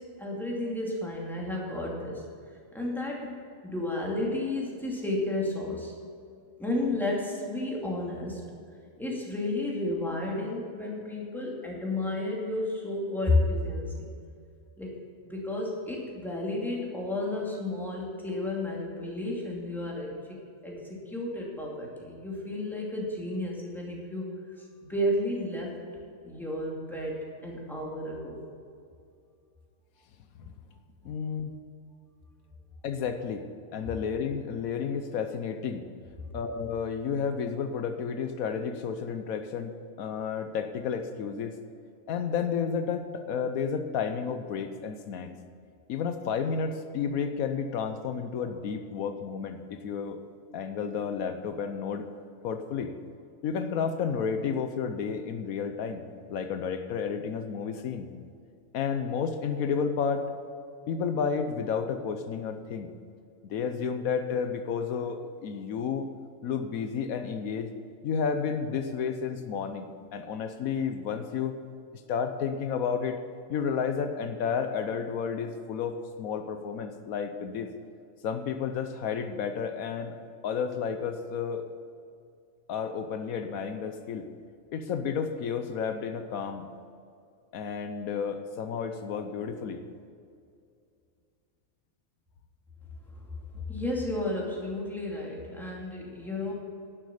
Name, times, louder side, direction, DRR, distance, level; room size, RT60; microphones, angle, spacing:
voice 1, 0.0-2.2 2.7-3.3 3.6-5.9 6.6-8.4 9.0-14.1 14.8-15.0 15.2-25.7 26.2-28.4 93.7-96.5, left 1 dB, ahead, -4 dB, 2.4 m, -32 dB
voice 2, 31.0-31.5 32.8-33.4 33.7-35.9 36.3-41.5 42.1-45.3 45.9-50.2 50.5-52.1 52.4-52.9 53.4-56.0 56.3-58.1 58.7-60.3 60.9-62.9 63.4-66.1 66.4-67.7 68.0-69.9 70.1-71.5 72.1-73.2 73.5-77.7 78.2-80.1 80.4-81.6 82.7-84.3 84.7-86.7 87.5-89.8, left 6 dB, 80° left, 8 dB, 1.2 m, -31 dB
11.5 x 7.4 x 7.0 m, 2.4 s
omnidirectional pair, 1.5 m